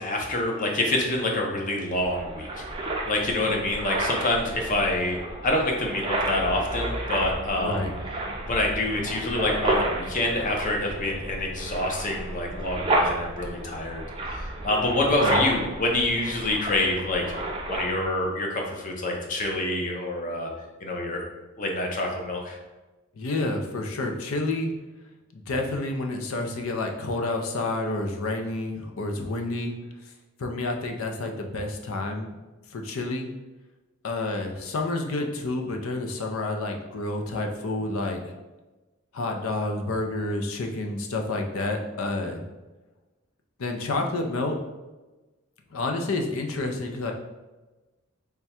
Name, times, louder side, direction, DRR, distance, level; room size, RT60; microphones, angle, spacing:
voice 1, 0.0-2.6 3.1-7.8 8.5-14.0 14.3-17.2 17.7-20.5 20.8-21.2 21.6-22.6, left 1 dB, 40° left, 0 dB, 0.6 m, -27 dB
sound 1, 1.9-18.1, right 1 dB, 25° right, 0.4 m, -31 dB
voice 2, 7.5-7.9 15.0-15.5 23.2-24.7 25.3-29.7 30.0-30.1 30.4-32.3 32.7-33.3 34.0-38.2 39.1-42.4 43.6-44.6 45.7-47.1, left 2 dB, 85° left, 3 dB, 0.5 m, -29 dB
3.5 x 2.2 x 4.2 m, 1.2 s
head